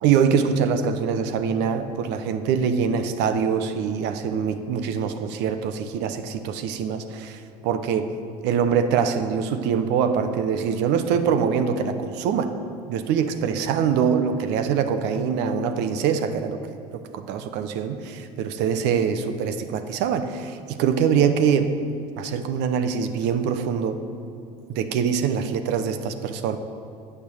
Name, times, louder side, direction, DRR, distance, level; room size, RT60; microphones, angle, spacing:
voice 1, 0.0-8.1 8.4-12.5 12.9-16.6 17.1-21.7 22.2-24.0 24.7-26.6, right 7 dB, 65° right, 9 dB, 0.9 m, -24 dB
9.2 x 6.7 x 6.9 m, 2.6 s
hypercardioid pair, 75°, 19 cm